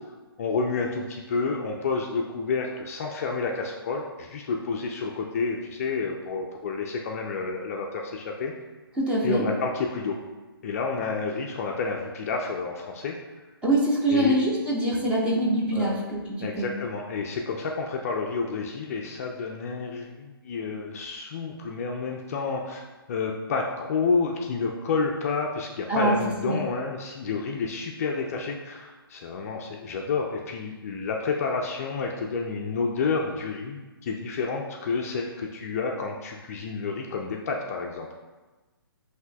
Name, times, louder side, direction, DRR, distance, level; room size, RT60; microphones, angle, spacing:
voice 1, 0.4-8.5 9.2-10.2 10.6-13.2 14.1-14.4 15.7-16.0 16.4-38.1, left 4 dB, 40° left, 0 dB, 0.4 m, -29 dB
voice 2, 9.0-9.4 13.6-16.7 25.9-26.1 26.5-26.6, right 1 dB, 10° right, -6 dB, 0.8 m, -24 dB
7.8 x 2.7 x 2.2 m, 1.2 s
figure-of-eight pair, 140°, 13 cm